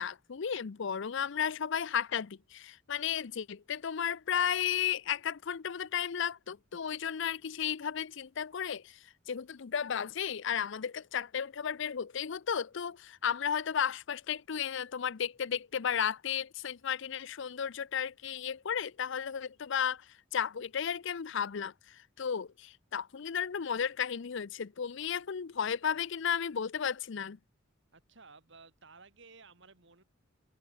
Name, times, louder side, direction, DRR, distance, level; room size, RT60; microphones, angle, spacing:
voice 1, 0.0-9.0 9.3-20.0 20.3-27.4, left 8 dB, 65° left, 0.5 m, -34 dB
voice 2, 27.9-30.0, right 4 dB, 65° right, 4.2 m, -56 dB
head